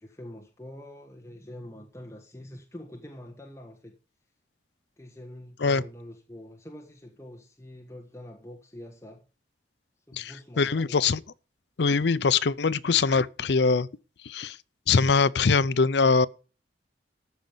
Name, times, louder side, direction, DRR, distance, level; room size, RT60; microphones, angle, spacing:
voice 1, 0.0-3.9 5.0-9.2 10.1-11.1, left 1 dB, 15° left, 1.4 m, -45 dB
voice 2, 10.1-11.2 11.8-13.9 14.2-14.6 14.9-16.3, left 4 dB, 65° left, 0.5 m, -23 dB
14.0 x 5.2 x 7.2 m
head